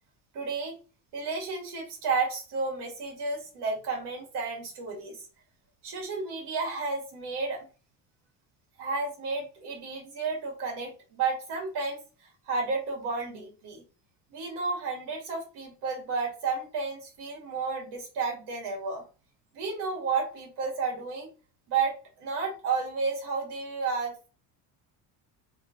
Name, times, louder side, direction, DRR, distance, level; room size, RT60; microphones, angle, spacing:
voice 1, 0.3-0.8 1.1-5.3 5.8-7.7 8.8-13.8 14.3-19.0 19.5-21.3 21.7-24.3, right 4 dB, 65° right, 1 dB, 1.9 m, -32 dB
3.6 x 3.1 x 2.8 m, 0.34 s
cardioid pair, 135°, 43 cm